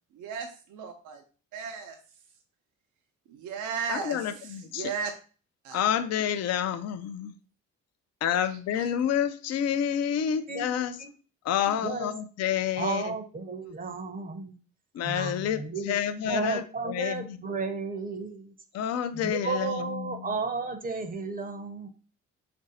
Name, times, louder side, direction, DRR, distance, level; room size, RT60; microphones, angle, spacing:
voice 1, 0.1-1.2 1.5-2.0 3.3-5.1 5.6-5.8 8.4-8.9, right 6 dB, 80° right, 4 dB, 0.6 m, -36 dB
voice 2, 3.9-4.9 5.7-7.3 8.2-11.0 11.4-13.1 14.9-17.4 18.7-20.4, left 9 dB, 55° left, 11 dB, 0.4 m, -29 dB
voice 3, 11.7-12.1 12.8-14.5 15.0-15.9 16.2-18.5 19.1-21.9, right 4 dB, 30° right, 7 dB, 0.6 m, -33 dB
3.1 x 2.6 x 4.1 m, 0.38 s
cardioid pair, 90°, 30 cm